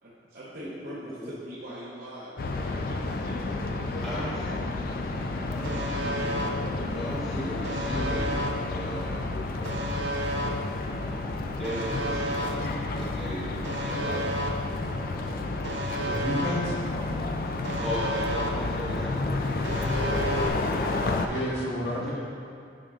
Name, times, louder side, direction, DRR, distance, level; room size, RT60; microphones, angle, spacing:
voice 1, 0.0-4.2, equal, 60° right, -8 dB, 0.8 m, -43 dB
voice 2, 0.6-0.9 1.2-1.3 4.0-4.5 5.4-9.3 11.6-13.5 13.8-14.2 15.1-15.4 15.8-16.1 17.8-20.0 22.0-22.1, equal, ahead, -9 dB, 0.7 m, -37 dB
sound 1, 2.4-21.3, left 2 dB, 55° left, 0.4 m, -31 dB
Alarm, 5.6-6.5 7.6-8.5 9.6-10.5 11.6-12.5 13.6-14.5 15.6-16.5 17.6-18.5 19.6-20.5, right 1 dB, 85° right, 0.5 m, -32 dB
voice 3, 16.0-16.7 21.2-22.1, equal, 75° left, -5 dB, 1.3 m, -30 dB
8.8 x 5.1 x 2.4 m, 2.3 s
head